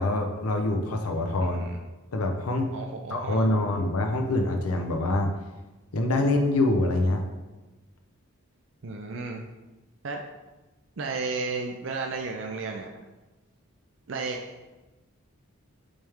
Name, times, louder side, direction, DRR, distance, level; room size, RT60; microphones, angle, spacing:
voice 1, 0.0-1.6 2.1-2.7 3.1-5.3 5.9-7.2, left 2 dB, 90° left, 4 dB, 0.7 m, -25 dB
voice 2, 1.4-1.8 2.7-3.5 8.8-9.4 10.0-10.2 11.0-12.9 14.1-14.4, right 4 dB, 60° right, 2 dB, 0.5 m, -33 dB
8.7 x 3.4 x 3.5 m, 1.1 s
head